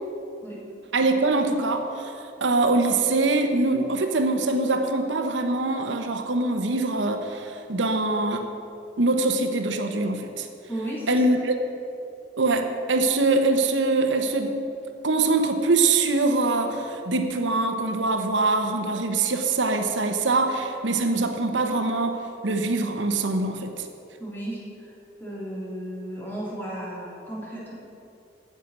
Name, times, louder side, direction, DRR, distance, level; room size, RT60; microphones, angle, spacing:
voice 1, 0.9-2.1 2.4-8.5 9.0-10.5 11.1-11.5 12.4-14.6 15.0-23.9, right 3 dB, 85° right, 6 dB, 1.0 m, -23 dB
voice 2, 10.7-11.2 24.2-24.9 25.2-27.7, right 1 dB, 10° left, -6 dB, 3.4 m, -34 dB
10.0 x 7.6 x 9.5 m, 2.6 s
head